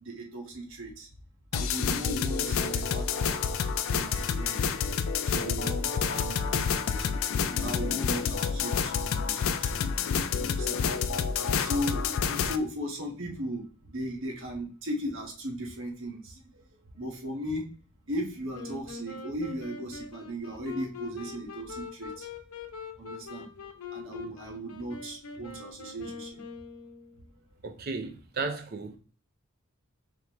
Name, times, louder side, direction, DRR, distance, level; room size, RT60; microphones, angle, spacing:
voice 1, 0.0-1.1 1.5-3.4 3.9-4.6 5.2-9.7 10.4-10.9 11.6-16.4 17.0-17.6 18.1-22.3 23.0-23.5 23.9-26.4, equal, 65° right, 1.3 m, -37 dB
sound 1, 1.5-12.6, left 6 dB, 70° left, 0.4 m, -29 dB
Wind instrument woodwind instrument, 18.5-27.3, left 5 dB, 90° left, 0.8 m, -43 dB
voice 2, 27.6-29.0, right 4 dB, 45° right, 0.7 m, -34 dB
5.0 x 3.2 x 3.0 m
head